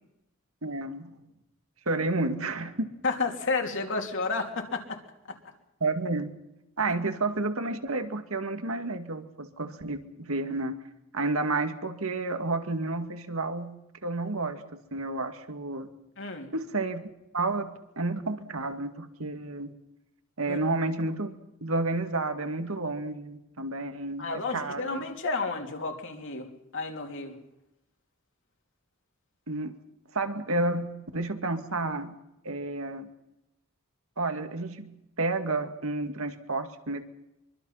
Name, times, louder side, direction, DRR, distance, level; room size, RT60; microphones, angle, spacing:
voice 1, 0.6-1.1 1.9-2.9 5.8-6.3 6.8-10.8 11.1-15.9 16.5-17.0 17.3-19.7 20.4-21.3 21.6-25.0 29.5-29.8 30.1-32.1 32.4-33.1 34.2-37.0, right 2 dB, 80° right, 7 dB, 2.2 m, -31 dB
voice 2, 3.0-5.0 5.3-5.4 16.2-16.5 20.5-20.6 24.2-26.5 26.7-27.4, left 3 dB, 65° left, 3 dB, 3.2 m, -31 dB
24.5 x 24.0 x 5.8 m, 0.90 s
head